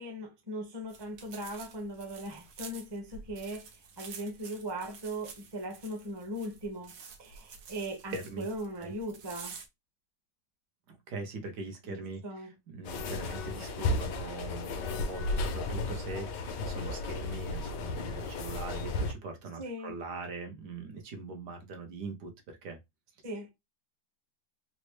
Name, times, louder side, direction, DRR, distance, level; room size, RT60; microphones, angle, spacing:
voice 1, 0.0-3.7 4.0-6.9 7.2-9.6 11.8-12.5 19.6-19.9 23.2-23.5, right 1 dB, 20° right, 0.7 m, -39 dB
sound 1, 0.9-9.7, right 5 dB, 85° right, 1.5 m, -49 dB
voice 2, 8.1-8.4 8.8-8.9 10.9-22.8, right 3 dB, 70° right, 1.4 m, -42 dB
sound 2, 12.8-19.1, left 2 dB, 80° left, 1.2 m, -34 dB
4.0 x 2.1 x 3.0 m
omnidirectional pair, 1.9 m